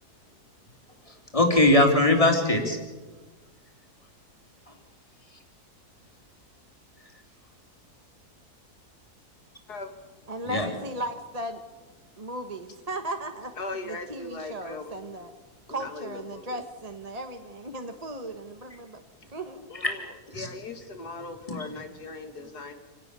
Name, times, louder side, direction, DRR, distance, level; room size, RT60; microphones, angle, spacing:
voice 1, 1.1-2.8 10.4-10.7 19.8-20.0 20.3-20.5 21.5-21.6, left 1 dB, 20° left, 3 dB, 3.8 m, -21 dB
voice 2, 10.3-11.6 12.2-15.3 15.7-19.0 19.3-19.7, right 1 dB, 25° right, 6 dB, 1.3 m, -36 dB
voice 3, 13.6-14.9 15.7-16.6 19.7-20.0 20.3-22.7, left 3 dB, 80° left, 7 dB, 2.8 m, -38 dB
28.0 x 18.0 x 6.9 m, 1.3 s
omnidirectional pair, 1.7 m